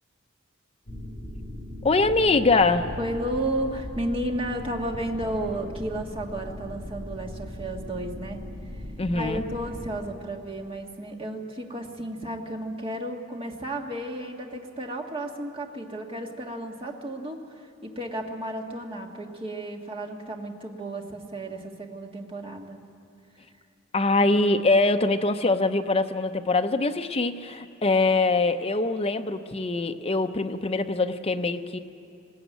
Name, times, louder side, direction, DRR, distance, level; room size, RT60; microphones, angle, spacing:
sound 1, 0.9-9.9, left 1 dB, 55° left, 3.7 m, -38 dB
voice 1, 1.8-2.9 9.0-9.4 23.9-31.8, left 3 dB, 30° left, 7 dB, 0.7 m, -23 dB
voice 2, 3.0-8.4 9.1-22.8, right 1 dB, 25° right, 2 dB, 1.6 m, -33 dB
20.0 x 16.0 x 9.2 m, 2.6 s
head